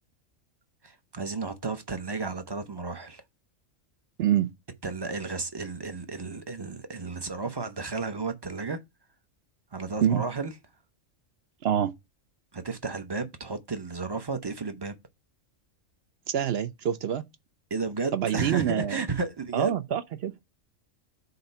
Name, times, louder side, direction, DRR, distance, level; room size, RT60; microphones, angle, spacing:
voice 1, 0.8-3.2 4.8-8.8 9.7-10.5 12.5-14.9 17.7-19.7, right 4 dB, 25° right, 0.5 m, -33 dB
voice 2, 4.2-4.5 10.0-10.2 11.6-11.9 16.3-17.2 18.1-19.0 19.5-20.3, right 10 dB, 60° right, 0.7 m, -26 dB
7.9 x 2.9 x 5.4 m
omnidirectional pair, 1.4 m